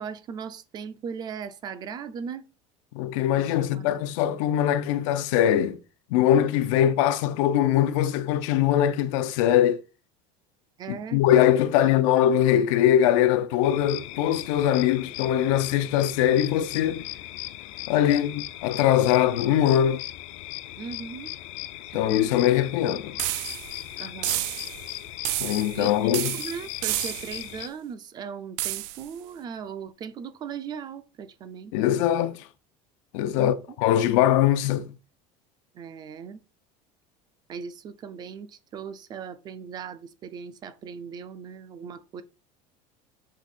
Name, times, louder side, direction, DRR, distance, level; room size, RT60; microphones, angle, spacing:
voice 1, 0.0-2.4 3.3-3.9 4.2-4.5 10.8-11.2 11.8-11.9 20.8-21.3 21.9-22.3 24.0-24.5 25.8-25.9 26.4-31.7 33.3-33.6 35.7-36.4 37.5-42.2, right 6 dB, 25° right, 0.4 m, -38 dB
voice 2, 2.9-5.8 6.1-9.8 10.9-17.1 17.9-20.0 21.9-23.2 25.4-26.4 31.7-32.4 33.1-34.9, left 11 dB, 85° left, 0.7 m, -22 dB
sound 1, 13.6-27.7, left 15 dB, 50° left, 0.5 m, -38 dB
sound 2, 23.2-23.8 24.2-24.9 25.2-25.8 26.1-27.5 28.6-29.1, right 16 dB, 85° right, 0.4 m, -30 dB
6.4 x 3.5 x 4.2 m
cardioid pair, 170°, 16 cm